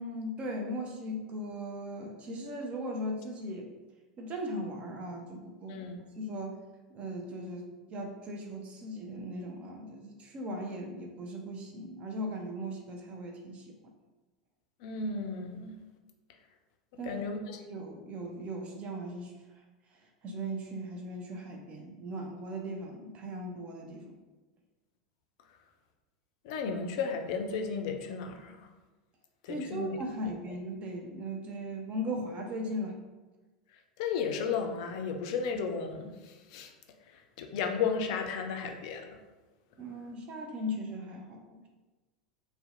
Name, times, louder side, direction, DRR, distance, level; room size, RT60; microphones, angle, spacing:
voice 1, 0.0-3.7 4.2-5.9 6.1-6.6 6.9-13.7 17.0-19.3 20.2-24.1 29.5-32.9 39.8-41.7, equal, 30° right, 2 dB, 0.4 m, -38 dB
voice 2, 5.7-6.0 14.8-15.8 17.0-17.6 26.4-28.7 29.4-30.0 30.2-30.3 34.0-36.7 37.1-39.1, left 5 dB, 55° left, 5 dB, 0.3 m, -34 dB
2.6 x 2.1 x 2.5 m, 1.2 s
figure-of-eight pair, 80°, 4 cm